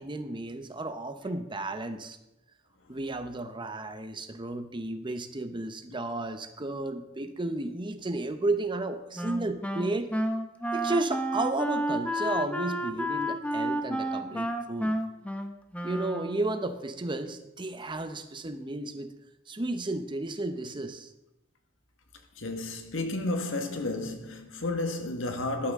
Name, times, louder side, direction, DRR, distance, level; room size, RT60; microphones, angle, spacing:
voice 1, 0.0-2.2 2.9-10.1 10.7-14.9 15.8-19.1 19.5-21.1, right 2 dB, 25° right, 0.9 m, -33 dB
Wind instrument woodwind instrument, 9.2-16.6, equal, 5° left, 0.8 m, -31 dB
voice 2, 22.4-25.7, left 2 dB, 85° left, 1.6 m, -32 dB
14.5 x 11.5 x 3.7 m
head